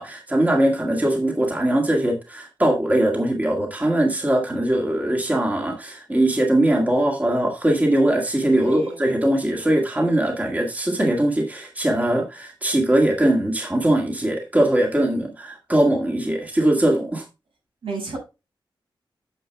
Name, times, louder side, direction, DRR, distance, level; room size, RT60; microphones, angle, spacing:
voice 1, 0.0-17.2, right 1 dB, 15° right, 1.8 m, -21 dB
voice 2, 8.6-9.0 17.8-18.2, right 3 dB, 85° right, 6.1 m, -32 dB
9.2 x 6.6 x 3.5 m
wide cardioid pair, 135°, 9 cm